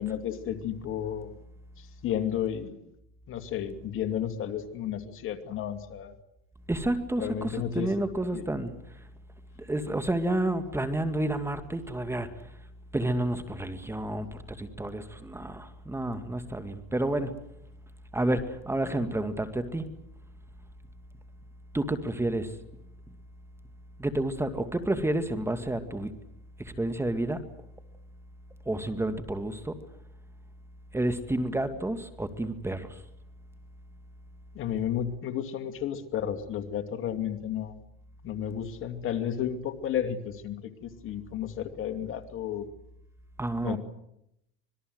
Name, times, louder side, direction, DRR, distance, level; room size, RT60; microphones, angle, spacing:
voice 1, 0.0-1.4 2.0-2.8 3.3-6.1 7.2-7.9 8.3-8.4 34.5-37.8 38.2-42.7 43.6-43.8, left 9 dB, 45° left, 8 dB, 2.5 m, -32 dB
voice 2, 6.7-8.7 9.7-12.3 12.9-17.4 18.1-19.9 21.7-22.5 24.0-26.1 26.8-27.4 28.7-29.7 30.9-33.0 43.4-43.8, right 1 dB, 10° right, 9 dB, 2.1 m, -30 dB
26.0 x 21.5 x 8.0 m, 0.81 s
supercardioid pair, 110°, 30 cm